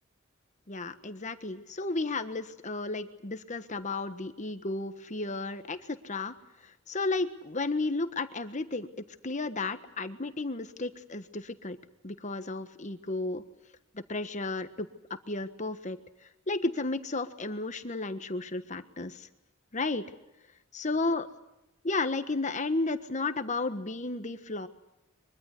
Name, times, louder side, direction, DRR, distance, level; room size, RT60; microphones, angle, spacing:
voice 1, 0.7-6.3 6.6-8.9 9.2-11.8 12.0-13.4 13.9-14.9 15.3-16.0 16.5-19.3 19.7-20.0 20.7-21.3 21.8-24.7, left 3 dB, 35° left, 10 dB, 1.4 m, -33 dB
24.0 x 23.5 x 8.4 m, 0.89 s
head